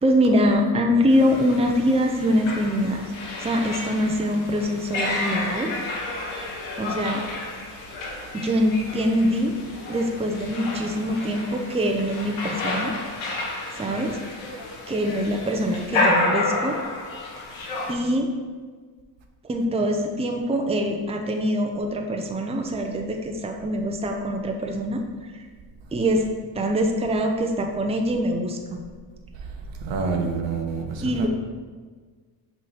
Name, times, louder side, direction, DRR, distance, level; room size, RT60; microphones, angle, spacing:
voice 1, 0.0-3.0 3.4-5.7 6.8-7.2 8.3-9.6 9.9-12.9 13.8-14.2 14.9-16.8 17.9-18.3 19.4-25.4 25.9-26.3 26.5-28.8 31.0-31.3, equal, 15° right, 2 dB, 0.6 m, -24 dB
sound 1, 1.1-17.9, left 2 dB, 90° left, 1.2 m, -30 dB
voice 2, 29.8-31.3, right 4 dB, 70° right, 3 dB, 1.0 m, -27 dB
6.2 x 3.9 x 4.2 m, 1.5 s
cardioid pair, 85°, 45 cm